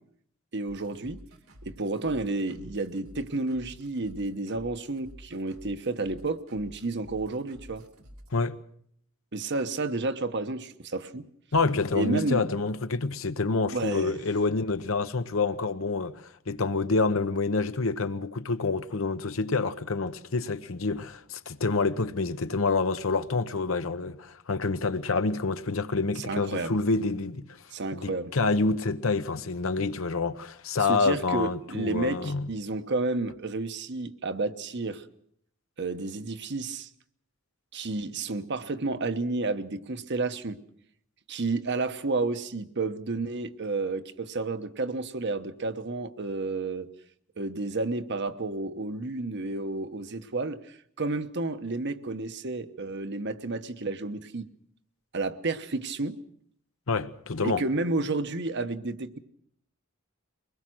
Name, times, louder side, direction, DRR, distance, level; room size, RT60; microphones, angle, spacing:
voice 1, 0.5-1.2 1.6-7.8 9.3-11.3 11.9-12.5 13.7-14.2 26.2-26.8 27.7-28.3 30.8-35.0 35.8-36.9 37.7-40.6 41.3-46.9 47.4-54.5 55.1-56.2 57.4-59.2, right 3 dB, 55° right, 1.1 m, -31 dB
sound 1, 0.7-8.4, equal, 80° right, 2.7 m, -50 dB
voice 2, 11.5-27.5 27.9-32.5 56.9-57.6, left 3 dB, 70° left, 0.9 m, -27 dB
23.0 x 20.5 x 6.2 m
head